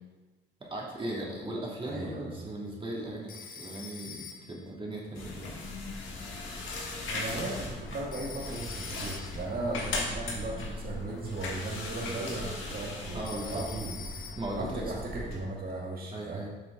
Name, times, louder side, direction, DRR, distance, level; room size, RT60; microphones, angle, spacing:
voice 1, 0.6-5.5 13.1-13.6 14.4-14.9 16.1-16.5, right 1 dB, 25° right, -3 dB, 2.2 m, -37 dB
voice 2, 1.9-2.5 7.1-14.0 14.6-16.4, right 2 dB, 50° right, -3 dB, 1.8 m, -37 dB
Telephone, 3.3-4.7 8.1-9.5 13.3-14.7, left 5 dB, 45° left, 1.1 m, -45 dB
sound 1, 5.2-15.4, left 2 dB, 75° left, 1.8 m, -38 dB
8.1 x 5.9 x 3.8 m, 1.2 s
cardioid pair, 90°, 20 cm